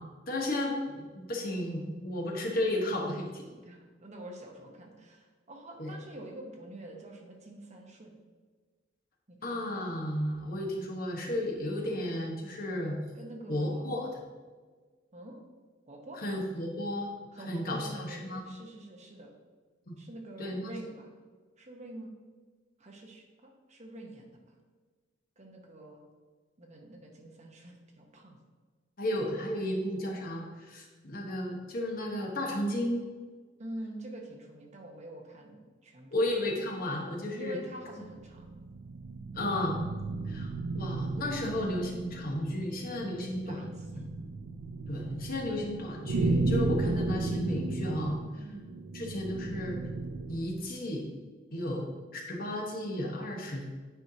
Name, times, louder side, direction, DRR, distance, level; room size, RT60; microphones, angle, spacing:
voice 1, 0.0-3.4 5.8-5.9 9.4-13.0 13.5-14.1 16.2-17.1 17.5-18.4 19.9-20.0 20.4-20.7 29.0-33.1 36.1-37.6 39.3-39.8 40.3-40.5 40.7-43.6 43.9-44.1 44.9-48.4 48.9-49.8 50.3-51.0 51.5-51.9 52.1-53.6, left 1 dB, 50° left, 0 dB, 1.1 m, -33 dB
voice 2, 3.7-8.2 9.3-9.8 13.1-14.0 15.1-15.4 15.9-16.2 17.3-19.3 20.0-21.1 21.6-22.2 22.8-24.4 25.4-26.0 26.6-28.4 33.6-36.2 37.3-38.5 43.3-44.1 48.4-48.8, right 1 dB, 35° right, 0 dB, 1.0 m, -46 dB
sound 1, 38.0-50.6, right 3 dB, 90° right, 0.4 m, -34 dB
9.2 x 4.4 x 2.8 m, 1.4 s
head